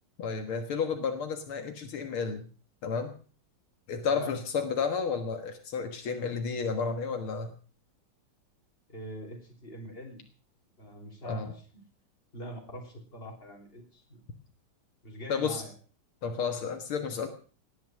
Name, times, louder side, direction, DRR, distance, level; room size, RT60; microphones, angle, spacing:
voice 1, 0.2-2.5 2.8-3.1 3.9-7.5 11.2-11.5 15.3-15.6 16.2-17.3, left 5 dB, 75° left, 6 dB, 2.4 m, -31 dB
voice 2, 8.9-10.2 10.8-11.8 12.3-14.3 15.0-15.7, equal, 25° left, 2 dB, 4.0 m, -43 dB
18.0 x 10.5 x 6.2 m, 0.41 s
omnidirectional pair, 2.4 m